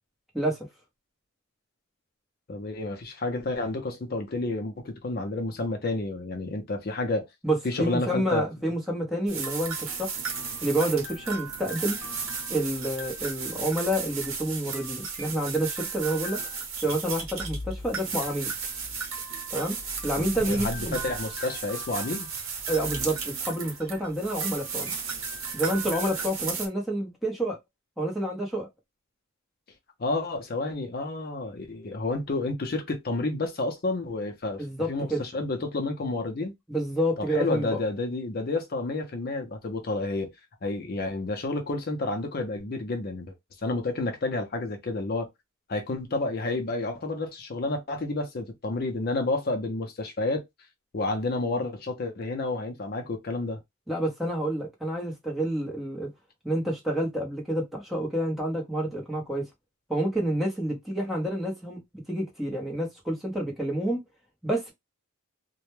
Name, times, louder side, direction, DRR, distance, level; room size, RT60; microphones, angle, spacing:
voice 1, 0.3-0.7 7.4-10.1 10.6-12.0 12.5-16.4 16.8-18.5 19.5-19.8 20.0-21.0 22.7-24.9 25.5-27.6 28.0-28.7 34.6-35.2 36.7-37.8 53.9-56.1 56.4-59.5 59.9-61.8 62.1-64.0 64.4-64.7, right 1 dB, ahead, 0.7 m, -28 dB
voice 2, 2.5-7.3 7.6-8.4 20.2-22.3 30.0-34.6 34.9-36.5 37.2-40.3 40.6-43.3 43.6-45.3 45.7-50.4 50.9-53.6, left 2 dB, 45° left, 0.5 m, -30 dB
sound 1, 9.3-26.7, right 5 dB, 65° right, 0.8 m, -34 dB
2.1 x 2.1 x 3.0 m
head